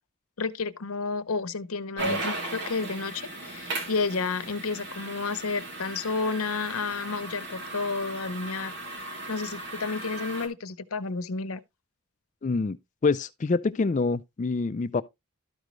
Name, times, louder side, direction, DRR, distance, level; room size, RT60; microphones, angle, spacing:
voice 1, 0.4-8.7 9.3-11.6, left 4 dB, 80° left, 0.8 m, -31 dB
sound 1, 2.0-10.5, right 2 dB, 55° right, 2.7 m, -36 dB
voice 2, 12.4-12.8 13.0-15.0, left 4 dB, 35° left, 0.3 m, -26 dB
12.5 x 5.1 x 3.1 m
head